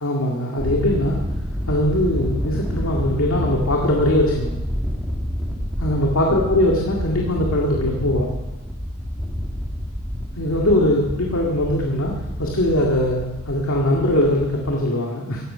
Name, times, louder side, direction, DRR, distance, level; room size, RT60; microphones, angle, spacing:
voice 1, 0.0-1.2 1.7-4.6 5.8-8.4 10.3-15.4, left 1 dB, 80° left, -1 dB, 2.0 m, -21 dB
Thunder, 0.6-14.8, equal, ahead, 1.4 m, -28 dB
16.0 x 11.0 x 5.6 m, 1.1 s
head